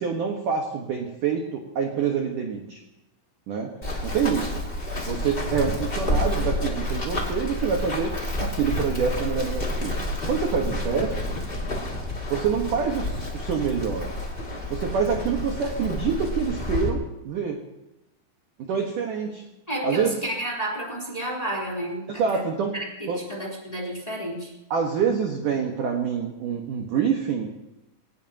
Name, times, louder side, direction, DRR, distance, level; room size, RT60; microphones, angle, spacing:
voice 1, 0.0-2.8 3.5-3.7 4.0-4.5 5.1-8.1 8.4-10.0 10.2-11.4 12.3-14.1 14.7-17.6 18.6-19.4 19.8-20.2 22.1-22.7 23.1-23.2 24.7-27.5, right 6 dB, 65° right, 1 dB, 2.1 m, -26 dB
Run, 3.8-16.9, left 1 dB, 40° left, 0.8 m, -29 dB
voice 2, 19.7-22.4 22.7-22.9 23.3-24.5, right 1 dB, 10° left, -2 dB, 3.0 m, -31 dB
23.5 x 19.0 x 3.0 m, 0.91 s
omnidirectional pair, 6.0 m